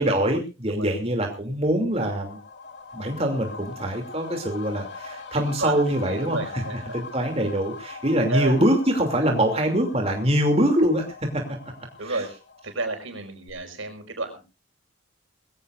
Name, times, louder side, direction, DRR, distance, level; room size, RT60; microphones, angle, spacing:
voice 1, 0.0-2.4 2.9-6.4 6.9-11.0 11.3-11.4 12.1-12.2, right 1 dB, 30° right, 2 dB, 2.8 m, -23 dB
sound 1, 1.7-13.2 13.5-13.6, left 4 dB, 55° left, 3.0 m, -42 dB
voice 2, 5.3-6.7 8.3-8.6 12.0-12.3 12.6-14.4, right 2 dB, 80° right, 5 dB, 5.1 m, -31 dB
22.0 x 16.5 x 2.5 m, 0.31 s
head